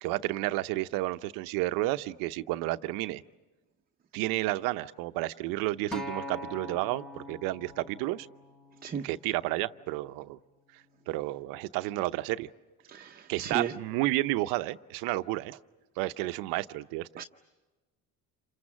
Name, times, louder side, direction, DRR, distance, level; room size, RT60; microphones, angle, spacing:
voice 1, 0.0-3.2 4.1-8.3 9.0-10.4 11.1-12.5 13.3-15.6 16.0-17.1, right 18 dB, 80° right, 0.8 m, -31 dB
Acoustic guitar, 5.9-10.2 11.0-11.1, left 1 dB, ahead, 1.2 m, -43 dB
voice 2, 12.9-13.7 17.2-17.3, right 8 dB, 25° right, 0.8 m, -34 dB
28.5 x 25.5 x 7.4 m
cardioid pair, 115°, 34 cm